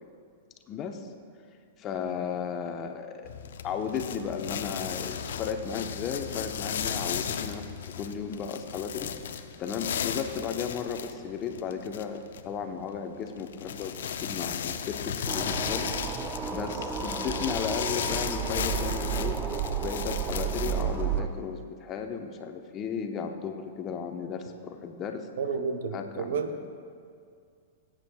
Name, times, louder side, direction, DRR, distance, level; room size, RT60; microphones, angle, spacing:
voice 1, 0.7-1.1 1.8-3.3 3.6-19.4 19.8-25.3 25.9-26.4, left 6 dB, 35° left, 5 dB, 0.9 m, -35 dB
sound 1, 3.2-21.2, left 8 dB, 70° left, 0.6 m, -35 dB
sound 2, 15.3-21.3, right 7 dB, 20° right, 0.7 m, -32 dB
voice 2, 25.4-26.7, right 5 dB, 70° right, 7 dB, 0.9 m, -31 dB
20.0 x 9.1 x 2.3 m, 2.3 s
hypercardioid pair, 110°, 0 cm